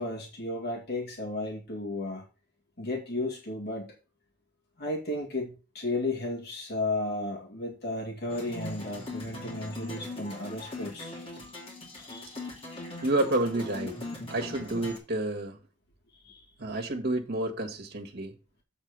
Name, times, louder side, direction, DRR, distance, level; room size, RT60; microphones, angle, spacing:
voice 1, 0.0-2.2 2.8-3.9 4.8-11.1 11.9-12.3 16.2-16.4, left 2 dB, 55° left, 2.1 m, -34 dB
sound 1, 8.3-15.0, left 2 dB, 30° left, 2.9 m, -40 dB
voice 2, 13.0-14.0 14.3-15.6 16.6-18.3, right 2 dB, 55° right, 1.7 m, -29 dB
7.6 x 4.2 x 6.7 m
head